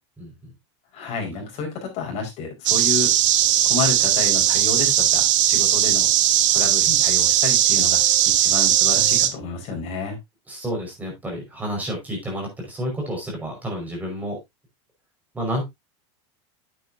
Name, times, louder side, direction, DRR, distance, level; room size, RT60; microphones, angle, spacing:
voice 1, 0.2-0.5 10.5-14.4 15.3-15.6, equal, 10° right, 0 dB, 5.1 m, -30 dB
voice 2, 0.9-3.1 3.6-6.1 6.5-10.2, left 4 dB, 40° left, 1 dB, 5.0 m, -30 dB
sound 1, 2.7-9.3, right 12 dB, 90° right, 1.2 m, -18 dB
9.4 x 8.5 x 2.7 m, 0.20 s
supercardioid pair, 155°, 16 cm